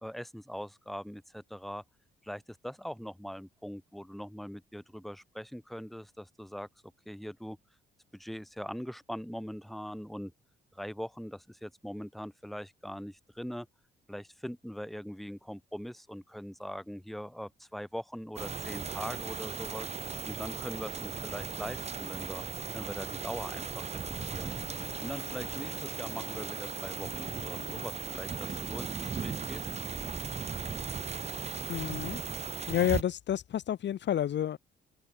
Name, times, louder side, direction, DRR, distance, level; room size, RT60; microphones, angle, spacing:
voice 1, 0.0-1.8 2.2-6.7 7.0-7.6 8.1-10.3 10.7-13.7 14.1-19.9 20.3-22.4 22.7-24.5 25.0-29.7, equal, ahead, 3.0 m, -41 dB
sound 1, 18.4-33.0, right 6 dB, 30° right, 1.1 m, -37 dB
Bowed string instrument, 24.0-28.6, left 15 dB, 85° left, 2.0 m, -50 dB
voice 2, 31.7-32.2 32.7-34.6, left 10 dB, 65° left, 1.7 m, -30 dB
open air
cardioid pair, 90°, 20 cm